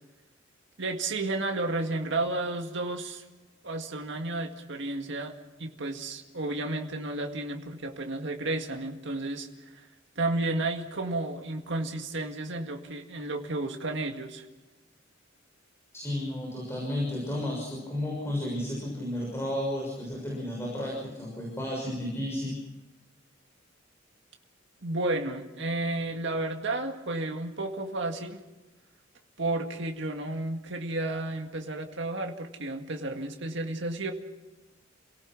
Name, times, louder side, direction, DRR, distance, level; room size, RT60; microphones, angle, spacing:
voice 1, 0.8-3.2 3.6-9.5 9.7-9.9 10.2-14.5 24.8-28.4 29.4-34.1, right 2 dB, 70° right, 3 dB, 2.0 m, -32 dB
voice 2, 15.9-22.6, left 1 dB, 15° left, -3 dB, 6.4 m, -32 dB
29.5 x 18.0 x 6.1 m, 1.1 s
head